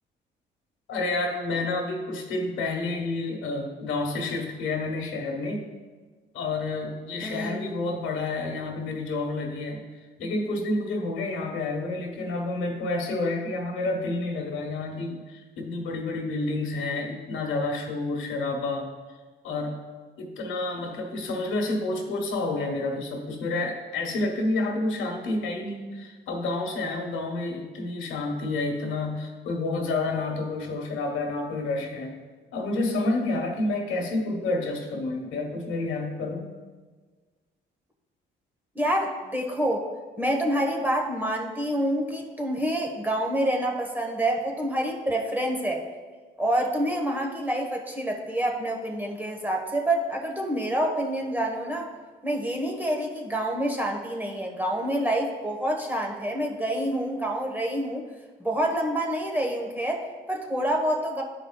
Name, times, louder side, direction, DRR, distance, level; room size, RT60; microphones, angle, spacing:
voice 1, 0.9-5.7 6.3-9.9 10.2-18.9 19.4-19.8 20.2-32.1 32.5-36.6, left 2 dB, 75° left, 2 dB, 1.4 m, -29 dB
voice 2, 7.2-7.6 38.7-39.9 40.2-45.8 46.4-51.9 52.2-58.0 58.4-61.2, right 1 dB, 10° right, 0 dB, 1.3 m, -27 dB
12.5 x 4.9 x 2.4 m, 1.4 s
cardioid pair, 90°, 20 cm